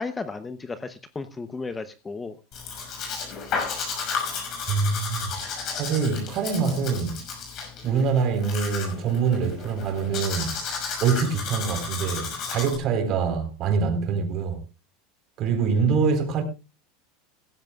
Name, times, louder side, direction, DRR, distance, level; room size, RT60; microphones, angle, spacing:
voice 1, 0.0-2.3, left 4 dB, 15° left, 0.8 m, -34 dB
Domestic sounds home sounds, 2.5-12.8, left 5 dB, 40° left, 5.9 m, -33 dB
voice 2, 4.7-5.3 5.8-7.2 7.8-10.6 11.0-14.6 15.4-16.4, right 5 dB, 40° right, 3.9 m, -24 dB
17.5 x 14.5 x 2.4 m
supercardioid pair, 145°, 0 cm